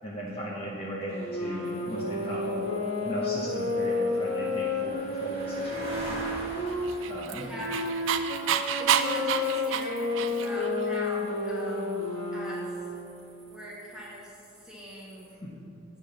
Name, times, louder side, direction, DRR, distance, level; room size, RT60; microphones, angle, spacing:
voice 1, 0.0-2.7 3.0-6.2 7.1-7.5 15.4-15.5, right 1 dB, 25° left, -5 dB, 0.8 m, -37 dB
sound 1, 1.1-6.8 7.5-12.9, left 2 dB, 70° left, 1.5 m, -31 dB
sound 2, 1.6-15.3, right 1 dB, 30° right, 1.2 m, -47 dB
Dog, 6.8-10.7, right 8 dB, 65° right, 0.4 m, -28 dB
voice 2, 6.9-7.9 8.7-12.0 12.3-12.8 13.5-15.3, equal, 5° right, -6 dB, 1.2 m, -42 dB
9.7 x 3.5 x 6.7 m, 3.0 s
head